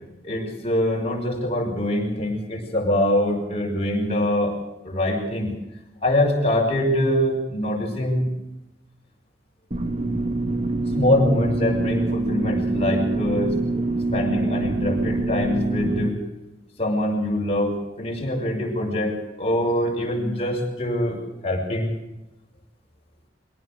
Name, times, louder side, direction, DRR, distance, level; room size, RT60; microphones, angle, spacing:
voice 1, 0.2-4.6 4.8-5.5 6.0-8.3 10.9-13.6 14.1-16.1 16.8-21.9, left 1 dB, 35° left, -1 dB, 6.1 m, -24 dB
sound 1, 9.7-16.1, right 2 dB, 35° right, 1.6 m, -25 dB
23.5 x 17.5 x 6.7 m, 0.96 s
head